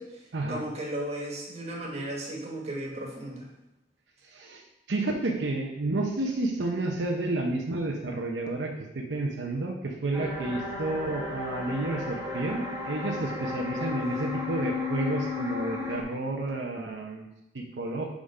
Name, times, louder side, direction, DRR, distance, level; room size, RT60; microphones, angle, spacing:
voice 1, 0.5-3.5, right 1 dB, 35° right, -2 dB, 1.3 m, -35 dB
voice 2, 4.2-4.6 4.9-17.3 17.5-18.1, right 2 dB, 85° right, 1 dB, 0.7 m, -31 dB
sound 1, 10.1-16.0, left 3 dB, 15° right, 1.0 m, -34 dB
5.1 x 3.6 x 5.3 m, 0.89 s
head